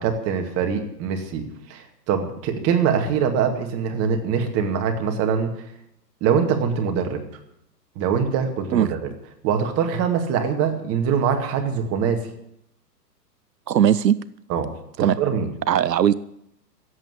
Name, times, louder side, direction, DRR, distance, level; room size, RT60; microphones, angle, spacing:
voice 1, 0.0-5.7 6.2-7.2 8.0-9.0 9.4-12.3 14.5-14.7 15.0-15.5, right 7 dB, 30° right, 5 dB, 2.2 m, -23 dB
voice 2, 13.7-14.2 15.0-15.2 15.7-16.1, right 10 dB, 80° right, 17 dB, 0.7 m, -18 dB
16.0 x 8.2 x 8.3 m, 0.76 s
hypercardioid pair, 120°, 49 cm